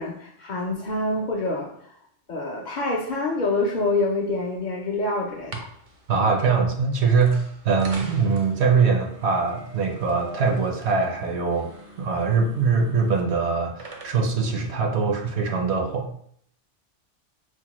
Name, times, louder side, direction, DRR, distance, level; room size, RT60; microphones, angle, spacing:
voice 1, 0.0-1.9 2.3-5.7, left 2 dB, 55° left, -2 dB, 0.5 m, -26 dB
sound 1, 5.3-15.6, right 2 dB, 50° right, 0.4 m, -45 dB
voice 2, 6.1-11.7 12.0-16.2, right 5 dB, 70° right, 3 dB, 0.8 m, -22 dB
4.5 x 2.1 x 2.9 m, 0.66 s
omnidirectional pair, 1.2 m